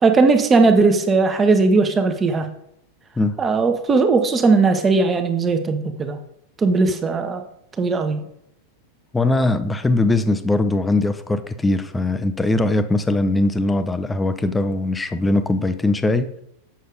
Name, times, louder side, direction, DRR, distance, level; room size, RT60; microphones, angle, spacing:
voice 1, 0.0-2.5 3.4-6.2 6.6-7.4 7.8-8.2, right 4 dB, 20° right, 7 dB, 1.2 m, -18 dB
voice 2, 9.1-16.3, left 2 dB, 10° left, 10 dB, 0.7 m, -20 dB
7.9 x 6.7 x 5.0 m, 0.76 s
figure-of-eight pair, 90°, 0 cm